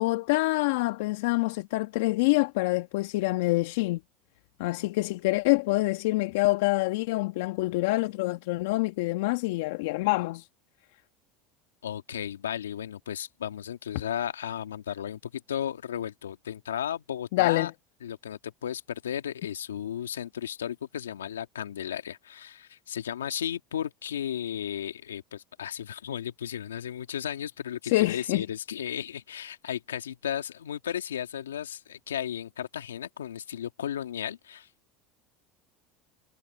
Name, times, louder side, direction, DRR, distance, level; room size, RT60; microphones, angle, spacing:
voice 1, 0.0-4.0 4.6-10.4 17.3-17.7 27.8-28.4, left 21 dB, 75° left, 1.4 m, -26 dB
voice 2, 11.8-17.7 18.0-34.7, left 9 dB, 90° left, 2.2 m, -34 dB
hypercardioid pair, 80°, 0 cm